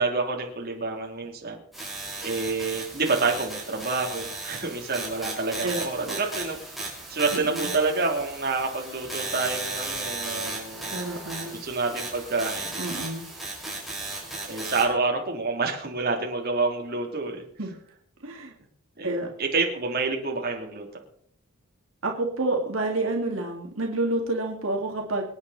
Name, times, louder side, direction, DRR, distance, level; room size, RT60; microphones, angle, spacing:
voice 1, 0.0-1.6 2.2-11.0 11.6-12.8 14.5-17.4 19.0-19.1 19.4-20.9, right 3 dB, 45° right, 1 dB, 3.0 m, -28 dB
sound 1, 1.7-14.8, right 2 dB, ahead, 5.0 m, -35 dB
voice 2, 10.9-11.6 12.8-13.3 17.6-17.7 18.2-18.5 19.0-19.3 22.0-25.3, right 2 dB, 70° right, 1 dB, 2.4 m, -28 dB
25.5 x 9.6 x 4.2 m, 0.62 s
head